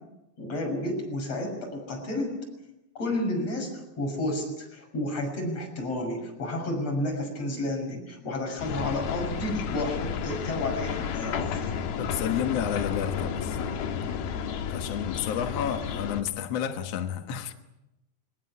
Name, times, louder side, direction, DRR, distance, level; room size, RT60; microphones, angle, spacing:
voice 1, 0.4-2.4 3.0-11.7, left 1 dB, 35° left, 7.3 m, -31 dB
sound 1, 8.6-16.2, left 7 dB, 65° left, 3.2 m, -32 dB
voice 2, 12.0-13.6 14.7-17.5, left 9 dB, 80° left, 1.4 m, -30 dB
22.5 x 19.0 x 9.8 m
omnidirectional pair, 5.1 m